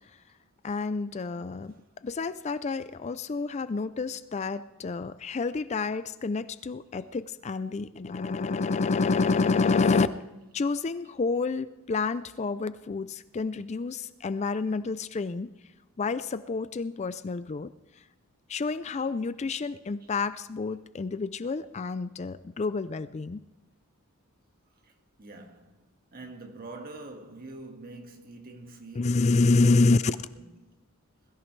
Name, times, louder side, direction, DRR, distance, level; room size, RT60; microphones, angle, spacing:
voice 1, 0.6-1.7 2.0-10.1 10.5-15.5 16.0-17.7 18.5-23.4 28.9-30.2, left 3 dB, 30° left, 0.4 m, -28 dB
voice 2, 25.2-30.1 30.4-30.6, right 2 dB, 45° right, 1.8 m, -45 dB
21.5 x 14.0 x 3.3 m
head